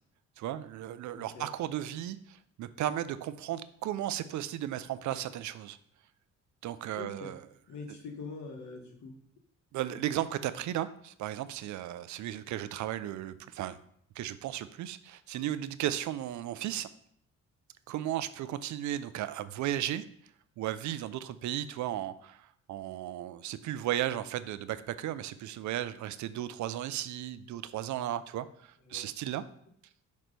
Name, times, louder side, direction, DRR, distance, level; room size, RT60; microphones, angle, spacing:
voice 1, 0.4-5.8 6.6-7.4 9.7-13.8 14.2-16.9 17.9-20.0 20.6-29.4, right 12 dB, 70° right, 13 dB, 0.5 m, -35 dB
voice 2, 1.1-1.5 6.9-7.3 7.7-9.1 28.9-29.1, left 3 dB, 70° left, 3 dB, 1.4 m, -43 dB
6.1 x 3.1 x 5.1 m, 0.67 s
cardioid pair, 90°, 30 cm